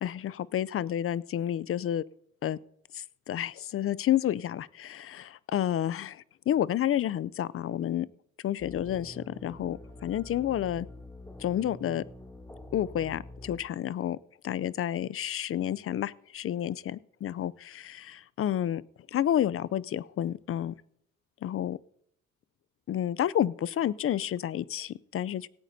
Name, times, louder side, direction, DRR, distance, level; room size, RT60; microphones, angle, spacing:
voice 1, 0.0-2.0 2.4-2.6 2.9-8.1 8.4-10.9 11.4-12.0 12.7-14.2 14.4-18.8 19.1-20.7 21.4-21.8 22.9-25.5, left 11 dB, 50° left, 20 dB, 0.5 m, -30 dB
sound 1, 8.6-13.6, left 1 dB, 10° left, 2.4 m, -46 dB
17.5 x 13.5 x 2.7 m, 0.70 s
cardioid pair, 90°, 30 cm